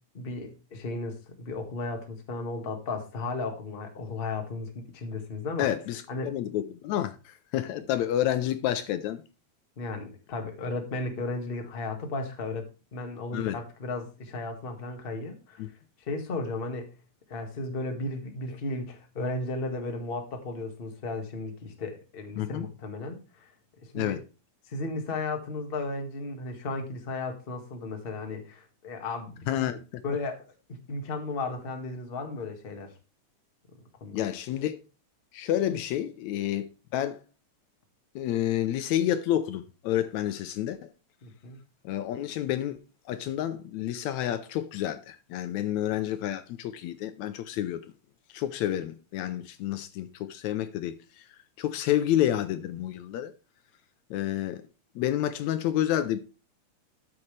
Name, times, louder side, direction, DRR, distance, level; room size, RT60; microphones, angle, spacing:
voice 1, 0.1-5.7 6.1-6.3 9.8-15.7 16.0-16.9 17.3-23.5 23.8-24.2 24.7-29.6 30.0-32.9 34.0-34.2 41.2-41.6, left 3 dB, 30° left, 1.1 m, -35 dB
voice 2, 5.6-9.2 13.3-13.6 15.6-15.7 22.4-22.7 24.0-24.2 29.5-29.8 34.1-34.8 35.3-37.2 38.2-40.9 41.9-42.8 43.1-47.8 48.3-51.3 51.6-53.3 54.1-54.6 55.0-56.2, left 12 dB, 80° left, 1.9 m, -29 dB
12.5 x 7.3 x 3.3 m
omnidirectional pair, 3.4 m